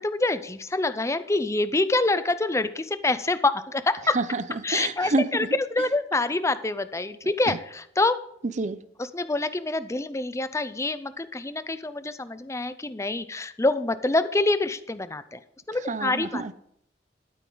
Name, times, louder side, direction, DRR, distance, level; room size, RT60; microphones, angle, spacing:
voice 1, 0.0-4.2 4.6-8.2 9.0-15.4 15.7-16.4, left 2 dB, 15° left, 13 dB, 0.5 m, -26 dB
voice 2, 4.1-5.3 7.5-7.6 8.6-8.8 15.9-16.5, right 3 dB, 45° right, 14 dB, 0.6 m, -28 dB
12.5 x 8.6 x 3.9 m, 0.70 s
head